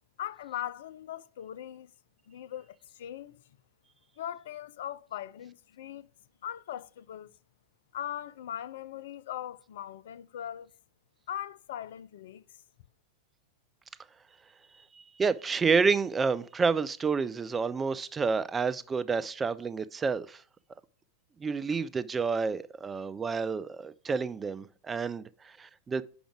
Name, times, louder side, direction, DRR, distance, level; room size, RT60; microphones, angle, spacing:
voice 1, 0.2-1.9 2.3-3.4 4.2-6.1 6.4-7.3 7.9-10.7 11.3-12.4, left 11 dB, 55° left, 0.3 m, -40 dB
voice 2, 14.9-20.4 21.4-26.0, right 5 dB, 15° right, 0.3 m, -29 dB
6.1 x 5.1 x 4.7 m
figure-of-eight pair, 90°, 0 cm